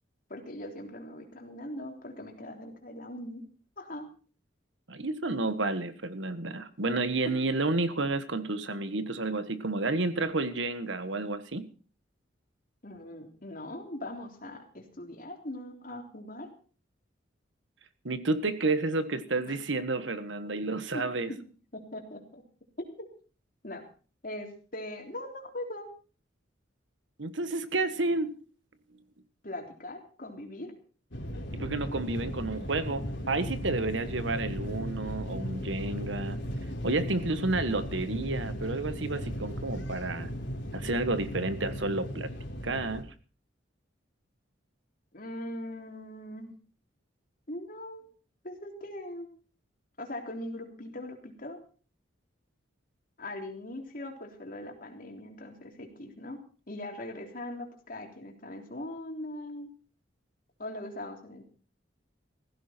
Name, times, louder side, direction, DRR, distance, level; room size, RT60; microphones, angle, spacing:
voice 1, 0.3-3.4 3.8-4.1 7.3-7.4 12.8-16.5 19.5-19.6 20.9-21.4 21.7-22.4 22.8-23.1 23.6-23.8 24.2-25.9 29.4-30.7 45.1-46.6 47.5-48.0 48.4-49.3 50.0-51.6 53.2-56.4 56.7-59.7 60.6-61.4, left 1 dB, 45° left, 2 dB, 3.5 m, -40 dB
voice 2, 4.9-11.6 18.0-21.3 27.2-28.3 31.5-36.4 36.8-40.3 40.7-42.3 42.6-43.1, right 2 dB, 80° right, 12 dB, 1.5 m, -30 dB
sound 1, 31.1-43.0, equal, 75° left, 3.6 m, -36 dB
16.0 x 15.0 x 4.4 m, 0.39 s
head